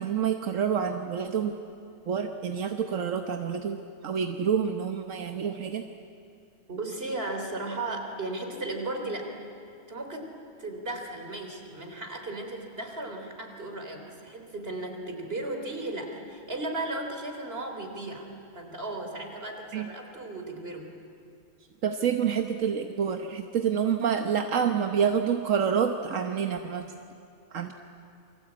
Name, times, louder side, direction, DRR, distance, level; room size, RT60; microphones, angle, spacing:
voice 1, 0.0-1.5 2.1-5.9 19.7-19.9 21.8-26.8 27.5-27.7, right 7 dB, 80° right, 5 dB, 1.4 m, -28 dB
voice 2, 6.7-9.3 9.9-18.3 18.5-20.9 27.6-27.7, right 2 dB, 50° right, 3 dB, 3.8 m, -35 dB
28.5 x 24.0 x 8.7 m, 2.5 s
omnidirectional pair, 1.3 m